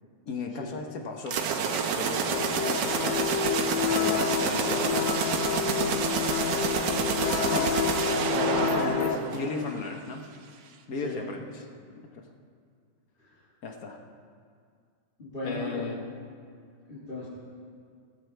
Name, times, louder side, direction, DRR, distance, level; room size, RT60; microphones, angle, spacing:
voice 1, 0.3-3.3 4.0-5.1 5.9-6.9 7.4-7.8 8.6-10.3 10.9-11.4 12.1-12.2 13.6-14.0 15.4-16.0, left 3 dB, 55° left, 3 dB, 1.4 m, -36 dB
sound 1, 1.3-9.9, right 6 dB, 75° right, 1.5 m, -29 dB
sound 2, 2.3-9.2, left 9 dB, 75° left, 1.2 m, -29 dB
voice 2, 8.3-9.2 10.9-11.2 13.2-13.4 15.2-15.9 16.9-17.3, left 2 dB, 30° left, -8 dB, 2.1 m, -38 dB
17.5 x 14.0 x 3.4 m, 2.2 s
omnidirectional pair, 2.1 m